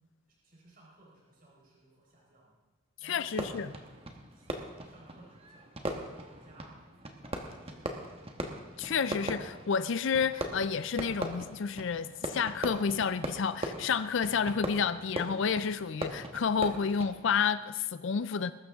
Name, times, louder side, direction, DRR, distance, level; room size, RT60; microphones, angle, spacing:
voice 1, 0.4-2.6 3.0-4.0 4.3-6.8 7.2-8.4, right 1 dB, 40° right, 4.3 m, -59 dB
voice 2, 3.0-3.7 8.8-18.5, left 6 dB, 60° left, 0.4 m, -30 dB
Fireworks, 3.2-17.5, right 1 dB, 25° right, 1.2 m, -40 dB
21.0 x 13.0 x 3.6 m
head